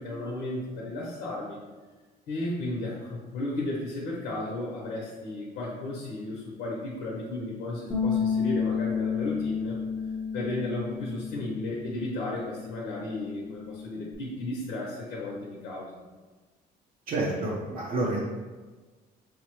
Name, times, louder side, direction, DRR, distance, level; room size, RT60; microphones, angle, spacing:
voice 1, 0.0-1.6 2.3-9.8 10.3-16.0, left 2 dB, 85° left, -4 dB, 0.9 m, -34 dB
Bass guitar, 7.9-14.2, left 6 dB, 5° right, 0.8 m, -32 dB
voice 2, 17.1-18.2, right 2 dB, 55° right, -4 dB, 0.7 m, -29 dB
5.5 x 2.1 x 3.0 m, 1.3 s
cardioid pair, 110°, 17 cm